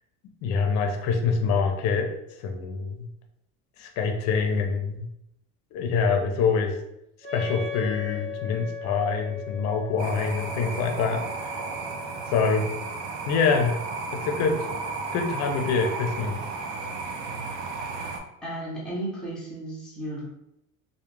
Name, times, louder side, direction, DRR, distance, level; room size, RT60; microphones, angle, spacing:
voice 1, 0.4-2.1 2.4-3.1 3.8-5.1 5.7-6.8 7.3-11.5 12.3-12.7 13.3-13.8 14.2-14.6 15.1-16.4, left 5 dB, 55° left, 4 dB, 0.5 m, -25 dB
Wind instrument woodwind instrument, 7.2-12.9, left 5 dB, 25° right, 1.2 m, -38 dB
sound 1, 10.0-18.2, right 3 dB, 65° right, 0.5 m, -34 dB
voice 2, 18.4-20.3, right 1 dB, 5° left, -6 dB, 0.7 m, -34 dB
2.3 x 2.1 x 3.0 m, 0.81 s
cardioid pair, 155°, 32 cm